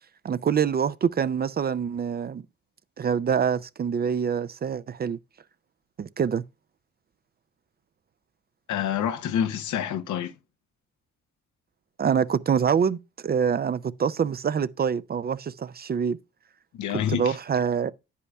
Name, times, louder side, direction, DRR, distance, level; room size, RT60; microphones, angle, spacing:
voice 1, 0.2-2.4 3.0-5.2 6.0-6.4 12.0-16.2 17.1-17.9, right 7 dB, 35° right, 0.4 m, -25 dB
voice 2, 8.7-10.3 16.7-17.4, left 9 dB, 75° left, 0.9 m, -27 dB
9.8 x 8.3 x 2.3 m
cardioid pair, 90°, 30 cm